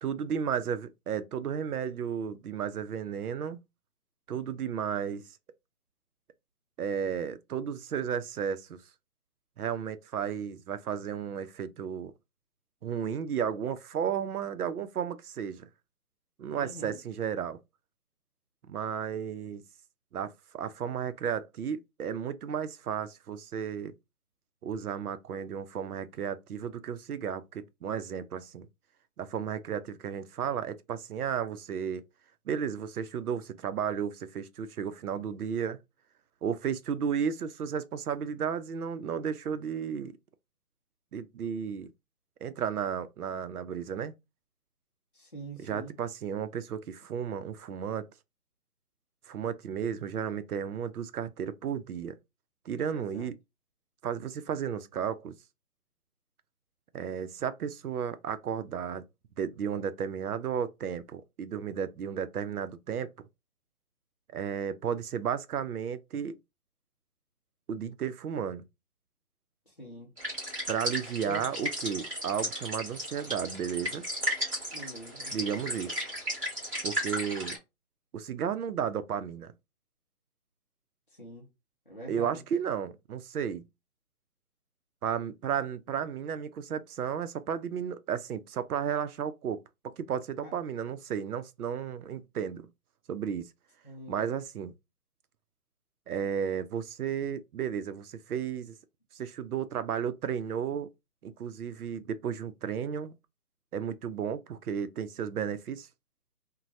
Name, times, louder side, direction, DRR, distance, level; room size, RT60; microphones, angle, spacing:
voice 1, 0.0-3.6 4.3-5.2 6.8-8.8 9.6-12.1 12.8-15.7 16.4-17.6 18.6-19.6 20.1-23.9 24.6-28.7 29.2-32.0 32.5-35.8 36.4-40.2 41.1-41.9 42.4-44.1 45.6-48.1 49.3-52.2 52.7-53.3 54.0-55.4 56.9-59.0 59.4-63.1 64.3-66.4 67.7-68.6 70.7-74.0 75.3-76.0 76.8-77.6 78.1-79.5 82.1-83.6 85.0-89.6 90.0-92.7 93.1-93.5 94.1-94.7 96.1-98.7 99.1-100.9 101.2-103.1 103.7-105.9, right 8 dB, 80° right, 0.6 m, -33 dB
voice 2, 16.5-17.0 45.1-45.9 52.9-53.3 69.7-70.1 71.2-71.5 74.7-75.3 81.2-81.5 81.9-82.4 90.4-90.5 93.8-94.3, right 1 dB, 35° left, 0.5 m, -44 dB
sound 1, 70.2-77.6, equal, 20° right, 1.8 m, -35 dB
3.1 x 2.2 x 2.6 m
hypercardioid pair, 180°, 44 cm